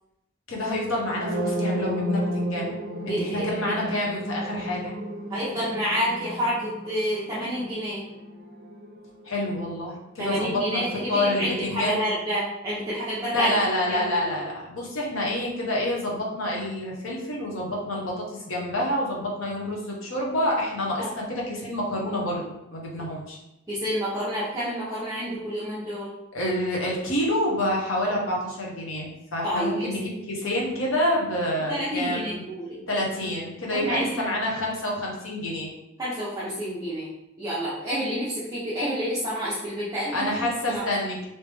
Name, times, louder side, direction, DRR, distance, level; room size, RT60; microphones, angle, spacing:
voice 1, 0.5-2.7 3.0-5.0 9.2-12.0 13.3-23.4 26.3-32.4 32.9-35.7 40.1-41.2, left 1 dB, 75° left, -2 dB, 1.0 m, -28 dB
sound 1, 1.0-8.9, equal, 50° right, 0.4 m, -32 dB
voice 2, 3.1-3.8 5.3-8.0 10.2-13.5 13.9-14.1 21.0-21.1 23.7-26.1 29.4-29.9 31.7-32.8 33.7-34.2 36.0-37.1 37.4-40.3 40.7-40.9, equal, 15° right, -10 dB, 0.7 m, -29 dB
3.2 x 2.9 x 3.4 m, 0.89 s
head